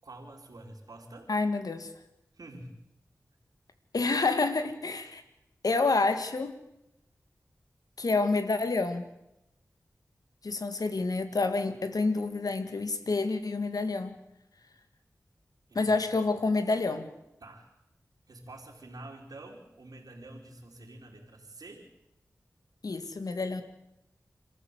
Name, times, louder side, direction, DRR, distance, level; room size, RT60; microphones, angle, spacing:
voice 1, 0.0-1.3 2.3-2.8 15.7-15.8 17.4-17.7 18.3-21.9, right 2 dB, 85° right, -5 dB, 3.6 m, -47 dB
voice 2, 1.3-1.9 3.9-5.2 5.6-6.5 8.0-9.0 10.4-14.1 15.7-17.1 22.8-23.6, left 3 dB, 80° left, 9 dB, 2.1 m, -28 dB
27.0 x 14.5 x 8.2 m, 0.88 s
cardioid pair, 45°, 6 cm